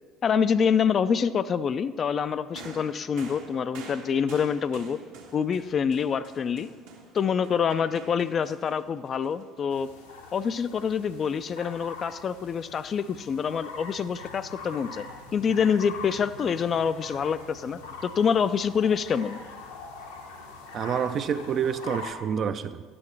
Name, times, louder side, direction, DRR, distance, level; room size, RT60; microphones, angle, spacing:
voice 1, 0.2-5.0 5.3-6.7 7.1-9.9 10.3-15.1 15.3-19.4, left 7 dB, 40° left, 13 dB, 0.3 m, -26 dB
sound 1, 2.5-10.1 11.0-11.2, right 3 dB, 75° right, 1.4 m, -47 dB
sound 2, 9.7-22.1, left 3 dB, 80° left, 1.0 m, -43 dB
voice 2, 20.7-22.8, right 7 dB, 45° right, 11 dB, 0.5 m, -28 dB
12.0 x 8.6 x 3.2 m, 1.5 s
figure-of-eight pair, 60°, 0 cm